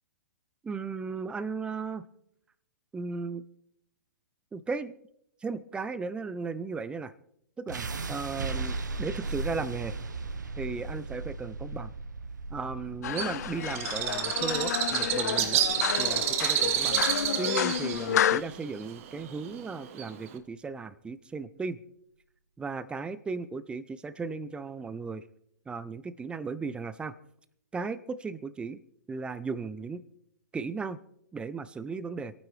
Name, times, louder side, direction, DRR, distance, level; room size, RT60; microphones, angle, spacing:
voice 1, 0.6-2.1 2.9-3.4 4.5-4.9 5.4-7.1 7.6-10.0 10.6-11.9 12.5-15.6 16.0-21.8 22.6-25.2 25.7-27.1 27.7-28.8 29.1-30.0 30.5-31.0 31.3-32.3, right 4 dB, 10° right, 15 dB, 0.7 m, -36 dB
sound 1, 7.7-19.7, right 3 dB, 75° right, 1.0 m, -38 dB
sound 2, 13.0-18.4, left 10 dB, 60° left, 0.4 m, -30 dB
Bird, 13.1-20.4, right 10 dB, 45° right, 1.2 m, -30 dB
26.5 x 9.5 x 3.4 m, 0.76 s
figure-of-eight pair, 120°, 10 cm